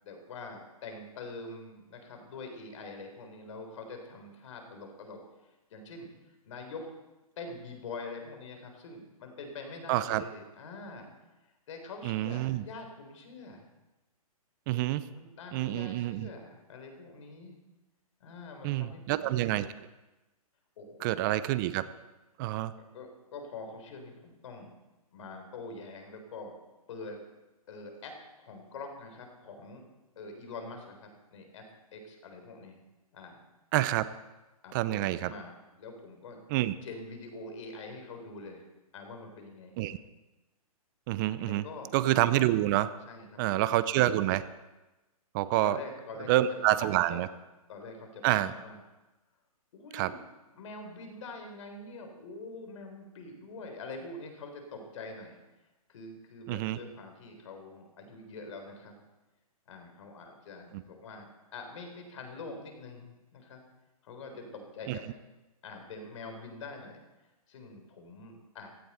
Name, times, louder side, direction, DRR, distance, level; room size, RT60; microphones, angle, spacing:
voice 1, 0.0-5.2 5.7-6.9 7.4-11.1 11.4-13.7 15.1-17.6 18.2-19.3 20.8-21.2 22.9-24.7 25.1-26.5 26.9-27.2 27.7-29.8 30.2-31.6 31.9-32.8 33.1-33.4 34.6-36.4 36.8-38.6 38.9-39.8 41.5-41.9 43.1-43.7 45.6-46.3 46.6-47.3 47.7-48.8 49.7-50.2 50.5-55.4 55.9-58.9 59.7-63.6 64.0-65.0 65.6-67.0 67.5-68.7, left 3 dB, 55° left, 4 dB, 3.9 m, -45 dB
voice 2, 9.9-10.2 12.0-12.6 14.7-15.0 15.5-16.3 18.6-19.7 21.0-21.8 22.4-22.7 33.7-34.1 34.7-35.3 36.5-36.7 39.8-40.0 41.1-41.6 41.9-42.9 43.4-44.4 45.3-45.8 46.3-47.3 48.2-48.5 49.9-50.1 56.5-56.8 60.7-60.8 64.9-65.0, right 15 dB, 35° right, 15 dB, 0.7 m, -27 dB
16.5 x 14.0 x 4.4 m, 1.1 s
figure-of-eight pair, 125°, 19 cm